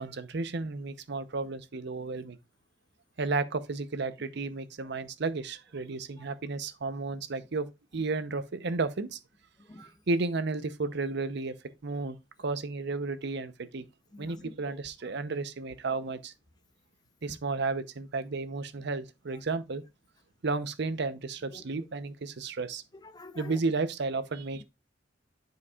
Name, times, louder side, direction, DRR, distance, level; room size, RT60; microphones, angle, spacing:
voice 1, 0.0-2.4 3.2-7.7 7.9-9.2 9.8-11.6 11.8-13.8 14.2-16.3 17.2-19.8 20.4-22.8 23.3-24.6, right 3 dB, 65° right, 0.7 m, -33 dB
voice 2, 14.1-14.8 17.3-17.4 21.5-21.9 22.9-23.6, left 2 dB, 20° left, 0.5 m, -48 dB
11.0 x 4.6 x 2.3 m
head